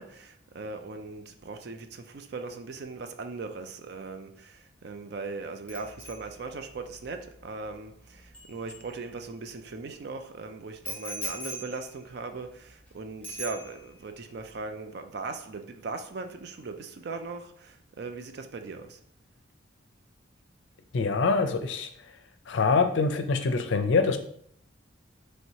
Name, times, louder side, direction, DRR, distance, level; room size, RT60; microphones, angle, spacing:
voice 1, 0.0-19.0, right 3 dB, 50° right, 0.4 m, -39 dB
Bicycle bell, 5.7-9.5 10.8-12.9 13.2-14.1 14.4-14.7, equal, 10° left, 1.0 m, -42 dB
voice 2, 20.9-21.9 22.5-24.2, left 4 dB, 65° left, 0.5 m, -24 dB
3.2 x 2.8 x 4.5 m
head